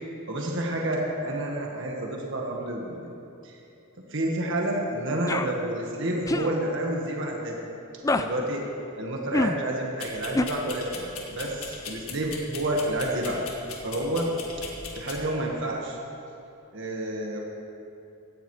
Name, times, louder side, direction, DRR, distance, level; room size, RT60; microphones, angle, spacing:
voice 1, 0.3-3.1 3.4-3.6 4.1-7.5 8.1-8.6 9.0-13.4 13.8-14.3 14.6-14.7 14.9-16.0 16.7-17.4, right 1 dB, 55° right, -1 dB, 1.6 m, -29 dB
sound 1, 5.3-5.5 6.3-6.5 8.0-8.3 9.3-9.6 10.4-10.5, left 2 dB, 15° left, 0.3 m, -24 dB
sound 2, 10.0-15.2, left 4 dB, 75° left, 1.8 m, -40 dB
17.0 x 14.5 x 3.2 m, 2.8 s
head